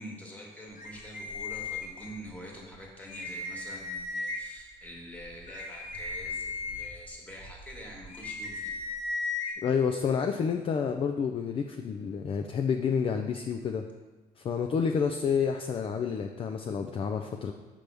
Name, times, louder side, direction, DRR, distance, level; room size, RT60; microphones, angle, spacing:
voice 1, 0.0-8.8, equal, 10° left, -2 dB, 1.4 m, -45 dB
sound 1, 0.8-2.3 2.7-2.8 3.1-4.6 5.1-9.5, left 3 dB, 50° left, 1.2 m, -36 dB
voice 2, 9.6-13.9 14.4-17.5, left 6 dB, 30° left, 5 dB, 0.3 m, -29 dB
6.0 x 5.3 x 3.4 m, 1.2 s
cardioid pair, 110°, 17 cm